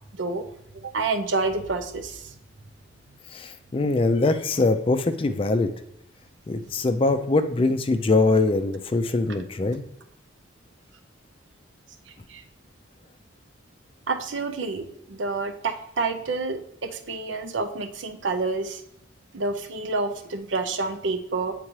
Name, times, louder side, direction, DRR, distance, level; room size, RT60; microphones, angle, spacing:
voice 1, 0.1-0.4 0.9-2.3 12.3-12.4 14.1-18.8 19.3-21.5, right 3 dB, 85° right, 7 dB, 0.6 m, -28 dB
voice 2, 3.3-5.7 6.5-9.8, left 3 dB, 30° left, 9 dB, 0.3 m, -22 dB
8.5 x 3.7 x 3.1 m, 0.72 s
head